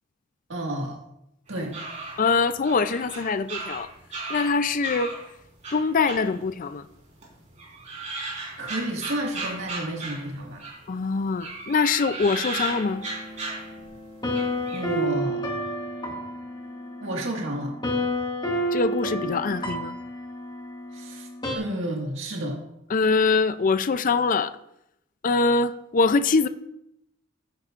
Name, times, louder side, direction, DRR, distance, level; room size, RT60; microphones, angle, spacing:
voice 1, 0.5-1.0 1.5-1.7 8.6-10.6 14.7-15.4 17.0-17.7 20.9-21.3 21.5-22.6, right 1 dB, 70° right, 1.8 m, -30 dB
sound 1, 1.5-5.2 5.6-6.9 7.2-10.9 11.3-14.0 14.3-14.9, right 3 dB, 35° right, 4.2 m, -36 dB
voice 2, 2.2-3.9 4.3-5.2 5.7-6.9 10.9-13.0 18.7-20.0 22.9-24.6 25.2-26.5, left 4 dB, 40° left, 0.4 m, -23 dB
sound 2, 12.7-21.6, equal, 25° left, 1.9 m, -31 dB
15.5 x 9.4 x 2.5 m
head